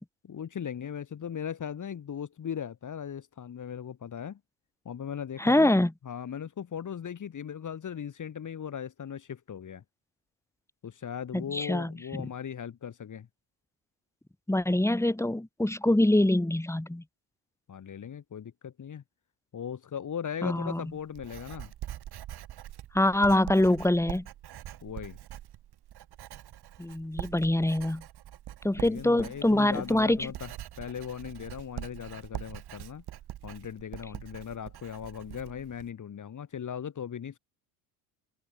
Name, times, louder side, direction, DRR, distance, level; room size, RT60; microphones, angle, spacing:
voice 1, 0.2-4.4 4.8-9.8 10.8-13.3 17.7-19.0 19.5-21.7 24.8-25.2 28.8-30.5 30.8-33.0 33.4-37.4, left 8 dB, 40° left, 2.9 m, -38 dB
voice 2, 5.4-5.9 11.5-12.0 14.5-17.0 20.4-20.8 22.9-24.3 26.8-28.0 28.6-30.3, left 1 dB, 5° left, 3.7 m, -24 dB
Writing, 20.5-35.9, right 12 dB, 55° right, 3.0 m, -44 dB
supercardioid pair, 70°, 45 cm